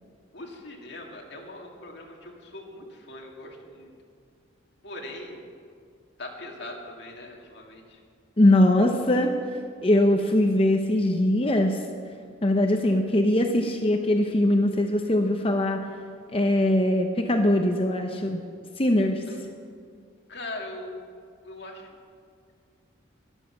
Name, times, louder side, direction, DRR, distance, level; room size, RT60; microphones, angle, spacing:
voice 1, 0.3-3.9 4.8-5.4 6.2-8.0 19.2-19.4 20.3-21.1 21.4-21.9, left 1 dB, 55° left, 0 dB, 2.2 m, -40 dB
voice 2, 8.4-9.3 9.8-11.8 12.4-15.8 16.3-18.4 18.8-19.2, left 1 dB, 25° left, 4 dB, 0.7 m, -21 dB
12.5 x 11.0 x 7.1 m, 2.1 s
head